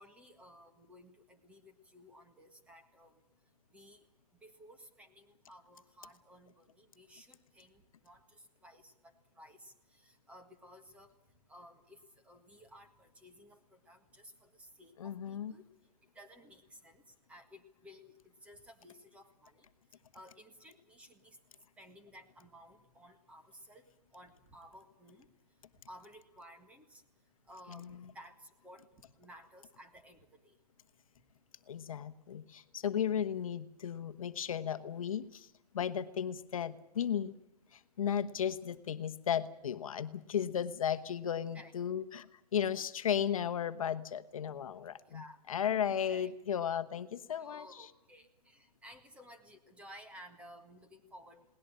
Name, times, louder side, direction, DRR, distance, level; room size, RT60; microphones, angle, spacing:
voice 1, 0.0-3.2 3.7-4.1 4.4-11.1 11.5-15.7 16.2-17.0 17.3-19.7 20.1-21.4 21.8-23.9 24.1-25.3 25.9-27.0 27.5-28.9 29.2-30.6 41.5-41.7 45.1-45.4 46.1-46.3 47.3-51.5, equal, 5° right, 7 dB, 1.7 m, -56 dB
voice 2, 15.0-15.5 27.7-28.0 31.7-35.5 35.7-37.4 37.7-47.9, left 8 dB, 55° left, 11 dB, 1.2 m, -35 dB
21.0 x 18.5 x 8.8 m, 0.78 s
hypercardioid pair, 155°, 20 cm